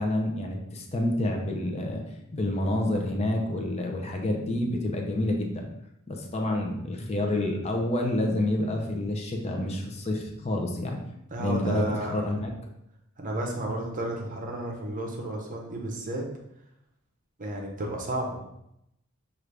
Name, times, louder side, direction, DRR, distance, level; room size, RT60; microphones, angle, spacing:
voice 1, 0.0-2.0 2.3-5.7 6.1-11.0 11.4-12.5, left 1 dB, 30° left, 1 dB, 0.6 m, -28 dB
voice 2, 11.3-12.2 13.2-16.2 17.4-18.4, right 1 dB, 40° right, 0 dB, 0.7 m, -32 dB
6.1 x 2.5 x 3.3 m, 0.82 s
head